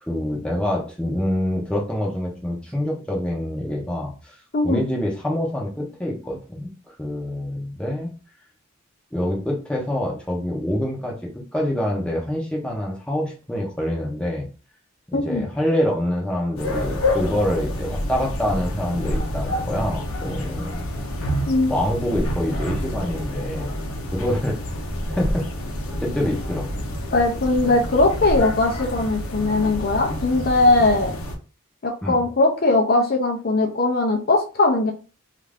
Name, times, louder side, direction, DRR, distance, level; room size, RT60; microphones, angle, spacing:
voice 1, 0.0-4.3 4.6-6.7 7.0-8.1 9.1-11.1 11.5-14.5 15.1-20.9 21.7-23.8 24.1-24.6 25.1-25.5 26.0-26.7 27.6-27.7 32.0-32.2, left 1 dB, 5° left, -2 dB, 0.7 m, -26 dB
voice 2, 15.1-15.4 21.5-21.7 27.1-31.1 31.8-34.9, left 2 dB, 45° left, 1 dB, 0.5 m, -20 dB
winter dogs birds, 16.6-31.4, left 1 dB, 80° left, 0.7 m, -28 dB
2.7 x 2.5 x 3.3 m, 0.35 s
head